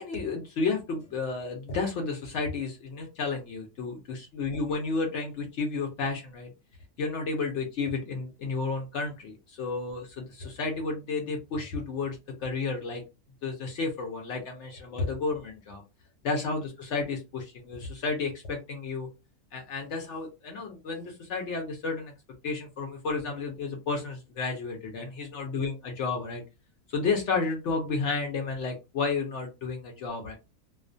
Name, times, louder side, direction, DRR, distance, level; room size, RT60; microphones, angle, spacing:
voice 1, 0.0-6.5 7.0-13.0 13.4-15.8 16.2-19.1 19.5-22.1 22.4-26.4 26.9-30.4, left 4 dB, 65° left, 2 dB, 0.8 m, -32 dB
2.4 x 2.2 x 2.5 m, 0.27 s
omnidirectional pair, 1.5 m